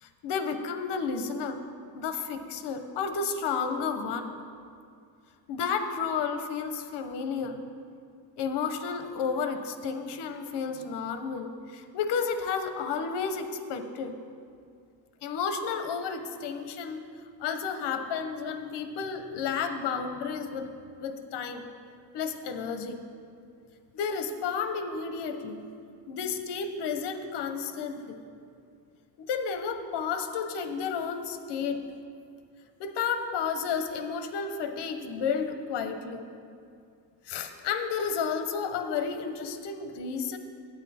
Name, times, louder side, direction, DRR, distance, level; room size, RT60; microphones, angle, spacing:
voice 1, 0.0-1.6 1.9-4.4 5.5-7.6 8.4-14.2 15.2-17.0 17.4-20.7 21.0-21.6 22.1-23.0 23.9-25.6 26.1-28.2 29.2-31.8 32.8-36.2 37.2-40.4, left 6 dB, 70° left, 8 dB, 0.8 m, -32 dB
8.9 x 8.9 x 4.2 m, 2.4 s
cardioid pair, 175°, 43 cm